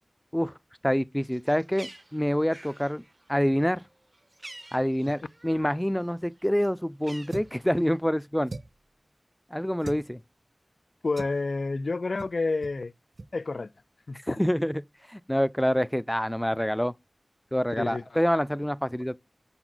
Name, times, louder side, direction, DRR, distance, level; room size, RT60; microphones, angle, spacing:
voice 1, 0.8-3.0 3.3-3.8 4.7-8.5 9.5-10.2 14.3-14.8 15.1-16.9 17.5-19.2, equal, 10° left, 0.5 m, -26 dB
Bird, 1.2-5.8 6.1-8.0, right 1 dB, 40° right, 0.8 m, -49 dB
sound 1, 7.3-7.6 8.5-8.9 9.8-10.1 11.2-11.4 12.2-12.4 12.6-12.8 13.1-13.3, right 2 dB, 65° right, 0.5 m, -39 dB
voice 2, 11.0-12.9 13.3-13.7 14.1-14.4 17.8-18.0, left 3 dB, 80° left, 0.4 m, -29 dB
6.2 x 4.0 x 6.1 m
wide cardioid pair, 45°, 0 cm